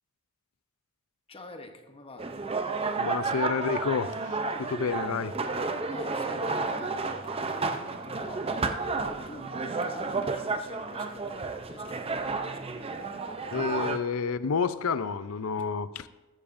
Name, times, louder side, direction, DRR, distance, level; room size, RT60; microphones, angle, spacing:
voice 1, 1.3-2.4 5.8-12.8, left 2 dB, 25° left, 5 dB, 1.0 m, -47 dB
sound 1, 2.2-14.0, right 3 dB, 30° right, 0.6 m, -31 dB
voice 2, 3.0-5.3 13.5-16.1, left 5 dB, 80° left, 14 dB, 0.5 m, -30 dB
14.0 x 13.5 x 2.6 m, 1.1 s
head